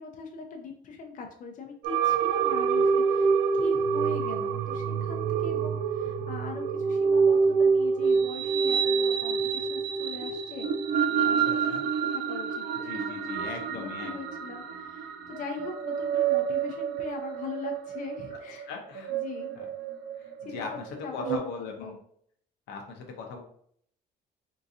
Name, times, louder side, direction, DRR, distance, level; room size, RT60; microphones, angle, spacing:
voice 1, 0.0-10.7 11.1-11.8 12.1-18.7 19.2-19.6 20.4-20.6 21.0-22.0, left 4 dB, 50° left, 3 dB, 0.6 m, -41 dB
sound 1, 1.8-21.4, right 6 dB, 85° right, 0.4 m, -27 dB
voice 2, 11.2-11.8 12.8-14.1 18.3-18.4 18.7-19.2 19.6-19.7 20.2-21.9 22.7-23.4, left 4 dB, 85° left, 2 dB, 0.8 m, -39 dB
3.7 x 2.7 x 2.6 m, 0.64 s
cardioid pair, 110°, 17 cm